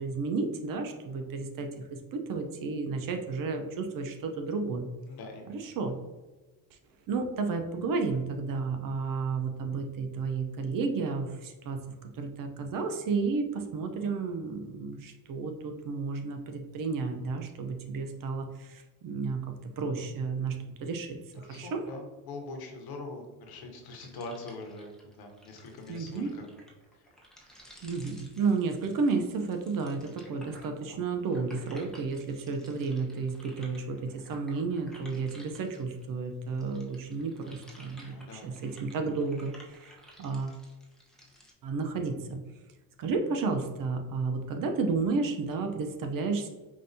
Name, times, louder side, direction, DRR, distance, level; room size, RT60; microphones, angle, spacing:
voice 1, 0.0-4.9 5.5-5.9 7.1-11.8 12.1-20.6 20.8-21.8 25.9-26.3 27.8-40.6 41.6-42.4 43.0-46.5, right 4 dB, 50° right, 5 dB, 0.7 m, -32 dB
voice 2, 5.1-5.7 21.4-26.5 27.0-27.1 38.0-38.6, left 2 dB, 60° left, 2 dB, 1.2 m, -43 dB
sound 1, 23.8-36.1 36.4-41.5, equal, ahead, 0.9 m, -55 dB
5.1 x 2.7 x 2.7 m, 1.2 s
supercardioid pair, 85°, 42 cm